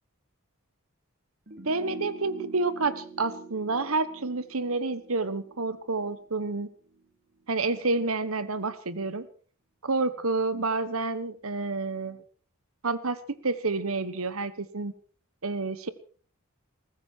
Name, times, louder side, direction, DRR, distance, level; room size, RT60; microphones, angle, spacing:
sound 1, 1.5-6.6 6.9-7.0, right 3 dB, 50° right, 3.6 m, -43 dB
voice 1, 1.6-6.7 7.5-9.3 9.8-12.2 12.8-14.9 15.4-15.9, right 3 dB, 75° right, 14 dB, 1.3 m, -29 dB
20.5 x 15.0 x 4.6 m, 0.43 s
head